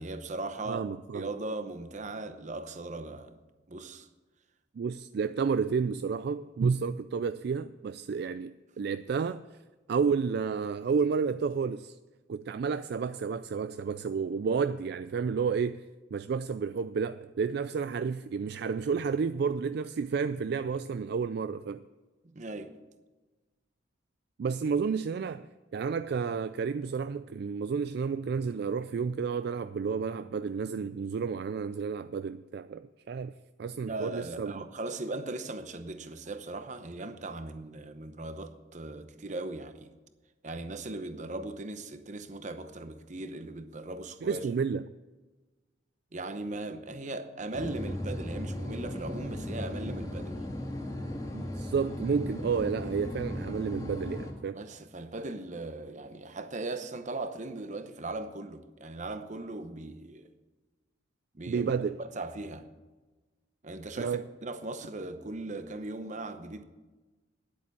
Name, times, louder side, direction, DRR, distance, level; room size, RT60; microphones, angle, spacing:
voice 1, 0.0-0.9 1.1-3.4 3.7-4.1 22.2-22.8 33.8-39.9 40.4-44.5 46.1-50.4 54.5-60.3 61.3-61.7 62.0-62.7 63.6-66.6, right 2 dB, 40° right, 0.8 m, -38 dB
voice 2, 0.7-1.3 4.8-9.4 9.9-12.0 12.3-15.8 16.1-21.8 24.4-25.5 25.7-33.3 33.6-34.6 44.2-44.9 51.3-54.6 61.5-62.0 64.0-64.2, right 5 dB, 60° right, 0.3 m, -31 dB
sound 1, 47.5-54.3, left 1 dB, 20° left, 1.9 m, -37 dB
10.0 x 8.6 x 8.2 m
head